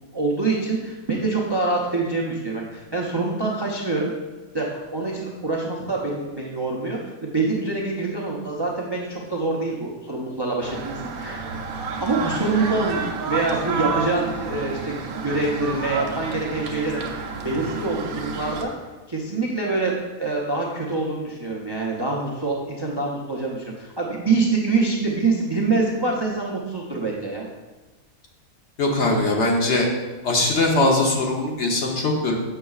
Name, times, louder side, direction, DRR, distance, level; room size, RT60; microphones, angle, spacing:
voice 1, 0.1-4.1 4.5-11.6 12.0-18.7 19.1-27.5, right 3 dB, 35° right, -3 dB, 0.4 m, -25 dB
sound 1, 10.6-18.7, right 5 dB, 85° right, 1.2 m, -30 dB
voice 2, 28.8-29.9 30.2-32.4, left 2 dB, 55° left, 0 dB, 1.1 m, -21 dB
6.7 x 6.4 x 2.4 m, 1.2 s
omnidirectional pair, 1.5 m